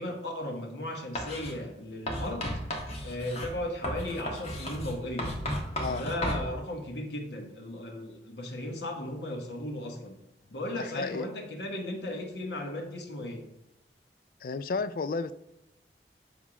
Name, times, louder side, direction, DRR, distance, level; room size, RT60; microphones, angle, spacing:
voice 1, 0.0-2.5 3.0-5.3 5.9-10.2 10.5-13.4, left 1 dB, 80° left, 2 dB, 1.4 m, -36 dB
Writing, 1.1-1.5 2.1-6.4, equal, 35° left, 1.3 m, -34 dB
voice 2, 10.7-11.3 14.4-15.3, left 4 dB, 50° left, 13 dB, 0.3 m, -32 dB
7.2 x 3.6 x 4.8 m, 0.90 s
head